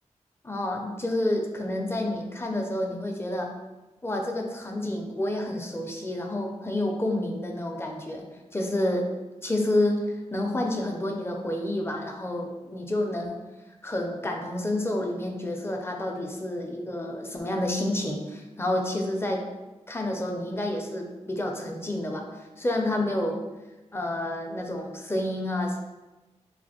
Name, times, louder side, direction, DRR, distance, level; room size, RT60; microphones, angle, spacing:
voice 1, 0.4-3.5 4.0-8.2 8.5-9.0 9.4-10.0 10.3-13.4 13.8-19.4 19.9-22.2 22.6-23.4 23.9-25.8, left 1 dB, 20° left, 2 dB, 0.5 m, -29 dB
3.2 x 2.4 x 4.2 m, 1.1 s
wide cardioid pair, 120°, 12 cm